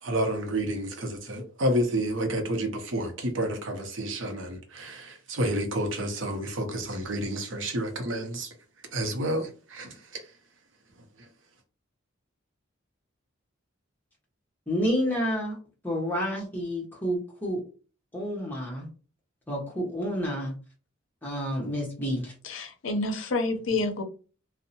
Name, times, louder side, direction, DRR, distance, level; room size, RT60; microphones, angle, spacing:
voice 1, 0.0-8.5 8.9-10.2 11.2-11.3, right 1 dB, 65° right, 0.6 m, -30 dB
voice 2, 14.7-15.6 15.8-17.6 18.1-18.9 19.5-20.5 21.2-22.3, equal, 10° left, 0.7 m, -29 dB
voice 3, 22.4-24.0, left 2 dB, 70° left, 0.5 m, -28 dB
2.6 x 2.0 x 2.7 m
head